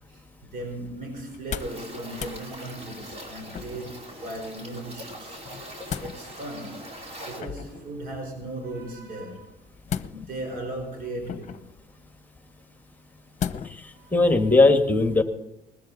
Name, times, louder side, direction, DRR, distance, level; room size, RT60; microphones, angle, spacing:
voice 1, 0.1-5.4 5.7-6.8 7.2-9.6 10.1-11.7 13.9-14.1, right 1 dB, 60° right, 4.5 m, -37 dB
sound 1, 1.3-1.8 2.1-2.4 3.5-4.0 5.4-6.2 7.4-7.8 9.9-10.5 11.2-11.7 13.4-13.9 14.3-14.4, left 8 dB, 45° left, 0.9 m, -34 dB
sound 2, 1.6-7.4, equal, 40° right, 4.8 m, -42 dB
voice 2, 13.7-15.2, left 2 dB, 10° left, 1.7 m, -19 dB
20.5 x 14.0 x 4.1 m
cardioid pair, 110°, 17 cm